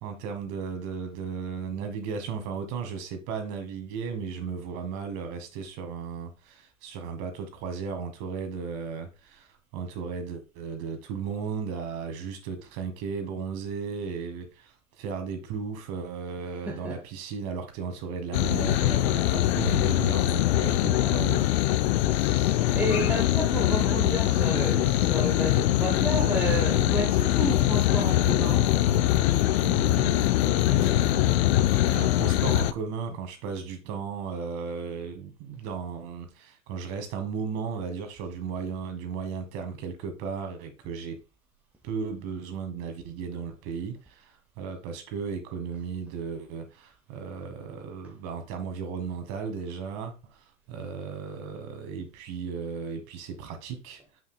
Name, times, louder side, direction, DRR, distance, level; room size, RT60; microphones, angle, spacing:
voice 1, 0.0-9.5 9.7-21.4 29.6-41.2 41.8-54.0, right 6 dB, 40° right, 1.7 m, -35 dB
voice 2, 16.7-17.0 20.9-21.2 22.0-28.7, right 1 dB, 5° right, 1.0 m, -32 dB
sound 1, 18.3-32.7, left 14 dB, 50° left, 0.6 m, -23 dB
7.3 x 6.2 x 2.2 m
hypercardioid pair, 130°, 42 cm